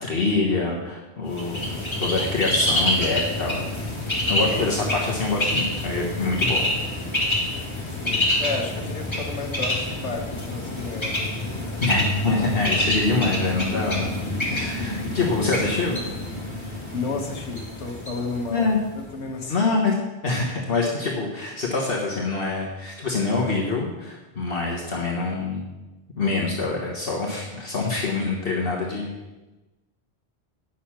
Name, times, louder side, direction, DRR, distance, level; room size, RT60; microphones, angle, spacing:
voice 1, 0.0-1.7 2.0-3.6 4.3-6.6 11.8-14.1 14.4-16.0 18.5-18.8 19.5-20.0 20.2-25.6 26.2-29.1, left 3 dB, 55° left, -2 dB, 1.4 m, -25 dB
Bird, 1.3-19.1, left 1 dB, 25° left, 2.1 m, -27 dB
voice 2, 8.0-11.7 14.5-14.6 16.9-18.7 18.9-19.6, left 3 dB, 80° left, 2 dB, 1.5 m, -32 dB
9.1 x 6.7 x 5.8 m, 1.1 s
omnidirectional pair, 1.2 m